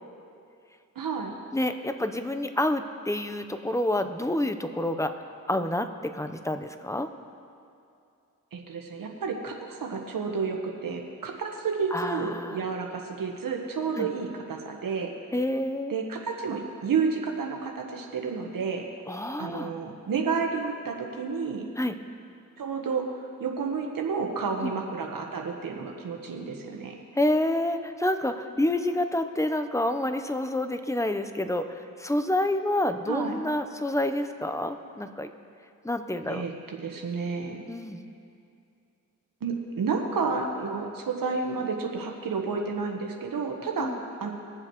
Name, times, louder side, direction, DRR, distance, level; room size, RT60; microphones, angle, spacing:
voice 1, 0.9-1.3 8.5-15.1 15.9-18.9 19.4-21.6 22.6-23.0 23.4-26.9 33.1-33.3 36.3-37.6 39.4-43.9 44.2-44.3, right 5 dB, 75° right, 1 dB, 1.3 m, -31 dB
voice 2, 1.5-7.1 11.9-12.6 14.0-14.1 15.3-15.9 19.1-19.7 21.8-21.9 24.6-24.8 27.1-35.3 35.8-36.4 37.7-38.1 43.8-44.0, left 1 dB, 10° left, 9 dB, 0.9 m, -28 dB
22.0 x 7.4 x 3.2 m, 2.6 s
supercardioid pair, 45°, 34 cm